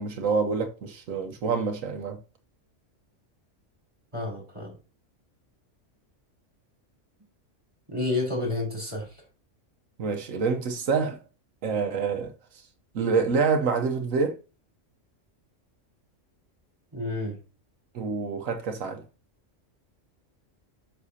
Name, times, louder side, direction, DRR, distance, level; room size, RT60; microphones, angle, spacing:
voice 1, 0.0-2.2 10.0-11.2 11.6-12.3 12.9-14.4 17.9-19.0, right 5 dB, 85° right, 1.3 m, -27 dB
voice 2, 4.1-4.8 7.9-9.2 16.9-17.4, left 2 dB, 25° right, 3.8 m, -30 dB
9.7 x 6.7 x 2.8 m
omnidirectional pair, 1.3 m